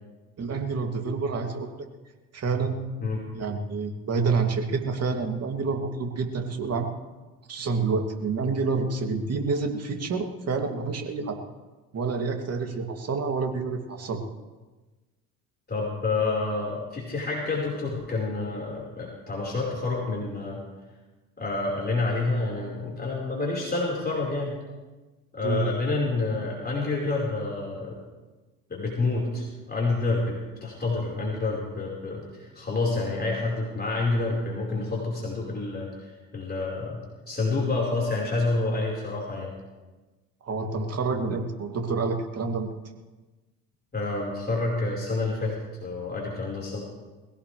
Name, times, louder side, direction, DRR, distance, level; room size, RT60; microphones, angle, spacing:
voice 1, 0.4-1.9 2.3-2.8 3.3-6.9 7.5-11.4 11.9-14.2 25.4-25.6 40.4-42.8, right 4 dB, 35° right, 3 dB, 2.8 m, -28 dB
voice 2, 15.7-20.6 21.4-24.5 25.3-28.0 28.7-37.0 37.3-39.5 43.9-46.8, left 3 dB, 25° left, -3 dB, 5.0 m, -28 dB
21.5 x 17.0 x 3.4 m, 1.2 s
hypercardioid pair, 65°, 41 cm